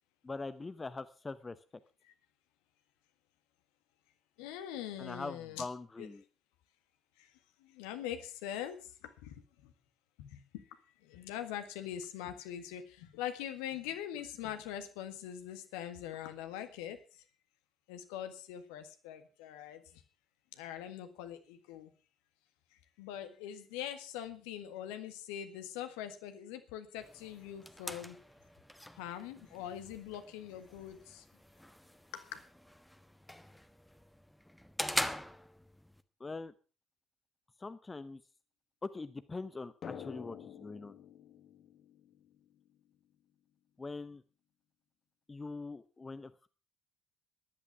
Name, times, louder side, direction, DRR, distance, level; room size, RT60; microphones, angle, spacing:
voice 1, 0.2-1.6 5.0-6.2 36.2-36.5 37.6-38.2 38.8-41.0 43.8-44.2 45.3-46.5, left 3 dB, 20° left, 13 dB, 0.9 m, -42 dB
voice 2, 4.4-5.7 6.0-6.1 7.2-7.3 7.6-9.4 9.6-9.7 10.2-10.6 11.0-17.0 17.9-19.8 20.5-21.9 23.0-28.2 29.0-31.2 32.1-32.4, left 10 dB, 65° left, 8 dB, 1.8 m, -43 dB
sound 1, 27.0-36.0, left 1 dB, 5° left, 1.3 m, -43 dB
Drum, 39.8-43.2, left 8 dB, 45° left, 1.5 m, -49 dB
14.5 x 11.0 x 5.9 m, 0.37 s
figure-of-eight pair, 50°, 0 cm